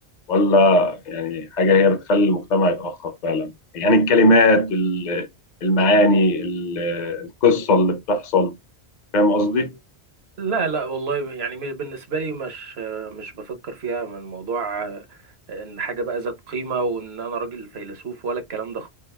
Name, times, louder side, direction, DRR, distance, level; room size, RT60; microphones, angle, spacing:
voice 1, 0.3-5.3 5.6-8.5 9.1-9.7, left 2 dB, 45° left, 0.9 m, -19 dB
voice 2, 10.4-15.2 15.5-18.9, right 4 dB, 70° right, 1.3 m, -29 dB
4.5 x 2.5 x 3.5 m
omnidirectional pair, 1.1 m